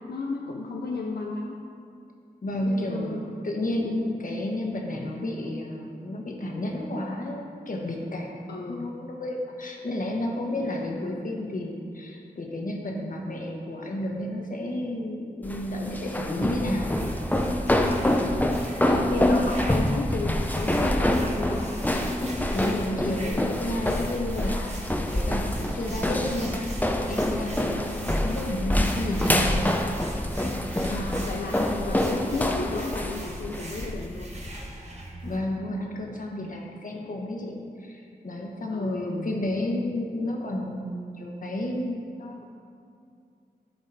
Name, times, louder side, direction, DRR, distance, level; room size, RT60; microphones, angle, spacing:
voice 1, 0.1-1.5 2.6-3.5 3.8-4.1 4.9-5.1 8.5-8.9 18.0-21.7 25.9-26.3 30.8-34.3 38.7-39.4, left 3 dB, 90° left, -1 dB, 0.7 m, -34 dB
voice 2, 2.4-16.9 22.5-29.7 35.2-42.4, left 1 dB, 60° left, 0 dB, 1.3 m, -31 dB
sound 1, 15.4-34.7, left 1 dB, 10° left, 0.6 m, -26 dB
sound 2, 16.7-35.4, right 1 dB, 45° right, 1.4 m, -42 dB
12.5 x 5.1 x 4.2 m, 2.4 s
wide cardioid pair, 100°, 16 cm